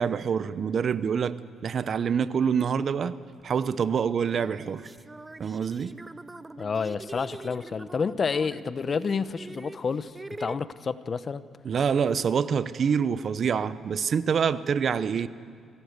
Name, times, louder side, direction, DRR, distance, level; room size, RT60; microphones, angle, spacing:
voice 1, 0.0-1.4 1.6-3.2 3.4-4.9 5.4-5.9 11.6-15.3, right 7 dB, 50° right, 15 dB, 0.8 m, -26 dB
sound 1, 3.4-3.5 4.2-10.6, right 2 dB, 20° right, 0.8 m, -43 dB
voice 2, 6.6-10.1 10.4-11.4, left 5 dB, 40° left, 14 dB, 0.8 m, -29 dB
26.0 x 17.5 x 8.1 m, 2.2 s
cardioid pair, 90°, 0 cm